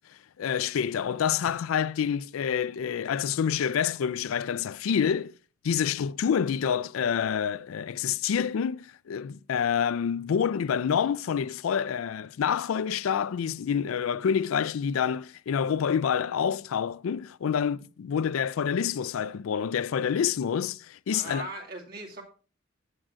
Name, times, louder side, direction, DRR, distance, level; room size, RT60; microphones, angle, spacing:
voice 1, 0.4-5.3 5.6-21.5, left 7 dB, 90° left, 0.4 m, -27 dB
voice 2, 21.1-22.2, right 2 dB, 45° right, 2.2 m, -39 dB
16.0 x 7.5 x 2.5 m
head